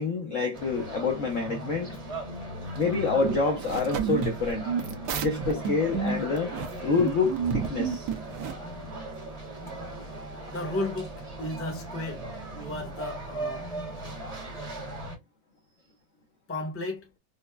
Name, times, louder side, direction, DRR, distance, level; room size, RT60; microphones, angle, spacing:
voice 1, 0.0-1.9 2.8-4.7 5.2-6.5 6.8-8.1, left 4 dB, 70° left, 0.7 m, -27 dB
sound 1, 0.5-15.2, right 2 dB, 30° right, 0.7 m, -38 dB
sound 2, 2.8-8.5, right 7 dB, 70° right, 1.1 m, -31 dB
voice 2, 10.5-12.2 12.5-13.7 16.5-17.1, left 2 dB, 10° left, 0.6 m, -34 dB
5.1 x 2.1 x 2.2 m
omnidirectional pair, 2.2 m